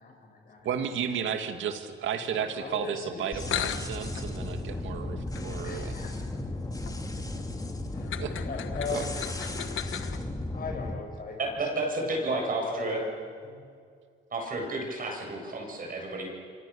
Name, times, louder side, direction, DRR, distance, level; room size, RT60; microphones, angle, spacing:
voice 1, 0.0-0.8 1.2-1.3 2.3-3.5 5.6-6.2 6.9-7.5 7.9-9.2 10.5-13.6, left 4 dB, 45° left, 3 dB, 6.9 m, -40 dB
voice 2, 0.6-6.0 8.2-8.3 8.9-9.0, right 8 dB, 75° right, 7 dB, 2.4 m, -33 dB
sound 1, 3.1-3.2 3.4-10.2, left 11 dB, 80° left, 1.4 m, -38 dB
sound 2, 3.3-10.9, left 2 dB, 20° left, 3.0 m, -35 dB
voice 3, 11.4-13.0 14.3-16.3, right 2 dB, 45° right, 1 dB, 7.8 m, -31 dB
28.0 x 25.0 x 7.2 m, 2.2 s
cardioid pair, 90°, 20 cm